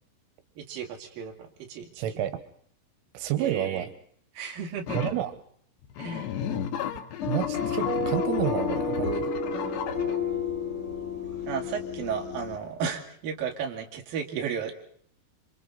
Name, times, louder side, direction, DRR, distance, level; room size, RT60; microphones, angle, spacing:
voice 1, 0.6-2.0 3.3-3.9 4.3-5.0 6.0-6.3 11.5-14.7, right 7 dB, 50° right, 2 dB, 3.7 m, -34 dB
voice 2, 2.0-2.4 3.2-3.9 4.9-5.3 7.3-9.3, right 12 dB, 85° right, 11 dB, 3.6 m, -29 dB
sound 1, 4.9-5.2 5.8-10.2, left 9 dB, 70° left, 3.2 m, -35 dB
sound 2, 7.2-12.6, left 5 dB, 40° left, 1.9 m, -30 dB
28.0 x 26.0 x 4.1 m, 0.62 s
omnidirectional pair, 5.7 m